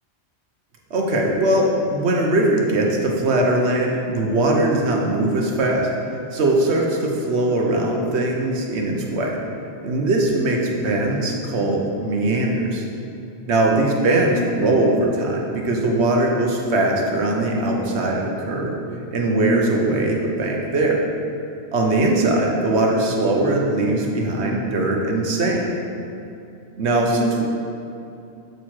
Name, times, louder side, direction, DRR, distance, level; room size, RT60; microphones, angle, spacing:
voice 1, 0.9-5.9 6.3-9.4 9.8-12.8 13.5-18.7 19.1-21.0 21.7-25.7 26.8-27.4, right 2 dB, 75° right, 0 dB, 1.2 m, -20 dB
7.8 x 4.7 x 4.4 m, 2.7 s
omnidirectional pair, 1.1 m